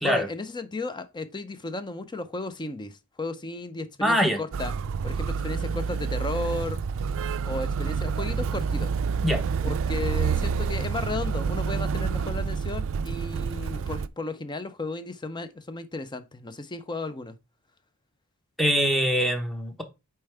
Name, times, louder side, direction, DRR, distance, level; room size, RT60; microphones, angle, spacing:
voice 1, 0.0-4.7 5.0-6.8 7.4-8.9 9.6-17.4, left 2 dB, 20° left, 0.6 m, -34 dB
voice 2, 4.0-4.4 9.2-9.7 18.6-19.8, equal, ahead, 0.9 m, -24 dB
Motor vehicle (road), 4.5-14.1, right 5 dB, 65° right, 0.4 m, -28 dB
6.9 x 4.5 x 3.4 m
head